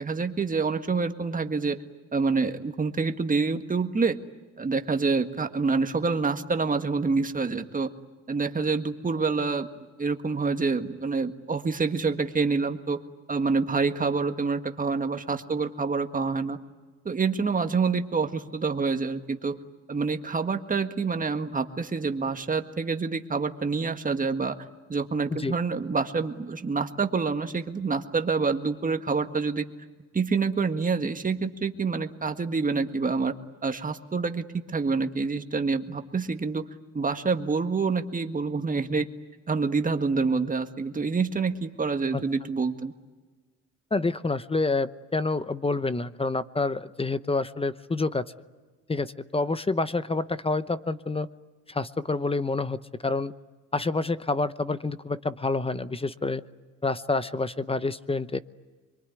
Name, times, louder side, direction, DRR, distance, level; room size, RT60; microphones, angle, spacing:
voice 1, 0.0-1.8 2.1-4.2 4.6-7.9 8.3-9.7 10.0-13.0 13.3-16.6 17.1-19.6 19.9-24.6 24.9-29.6 30.1-33.3 33.6-36.6 36.9-39.1 39.5-42.9, right 4 dB, 25° right, 7 dB, 1.7 m, -27 dB
voice 2, 43.9-48.3 48.9-51.3 51.7-53.3 53.7-56.4 56.8-58.4, left 3 dB, 20° left, 14 dB, 0.8 m, -28 dB
25.5 x 23.0 x 9.7 m, 1.4 s
cardioid pair, 90°, 30 cm